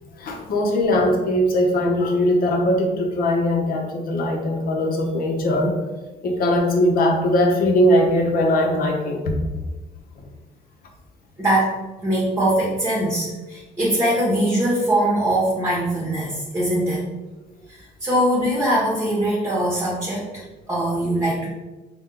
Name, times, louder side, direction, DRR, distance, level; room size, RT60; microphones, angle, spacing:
voice 1, 0.2-5.7 6.2-9.3, left 1 dB, 60° left, 2 dB, 0.8 m, -20 dB
voice 2, 11.4-11.7 12.0-17.0 17.7-21.5, right 1 dB, 15° right, -5 dB, 1.0 m, -22 dB
4.3 x 2.3 x 3.7 m, 1.2 s
cardioid pair, 110°, 17 cm